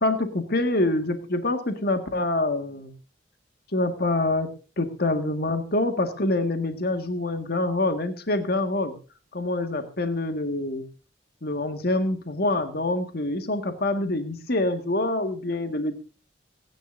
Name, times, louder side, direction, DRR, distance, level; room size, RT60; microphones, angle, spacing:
voice 1, 0.0-2.9 3.7-8.9 9.3-10.8 11.4-15.9, left 2 dB, 55° left, 7 dB, 1.8 m, -26 dB
26.5 x 10.5 x 2.6 m, 0.35 s
head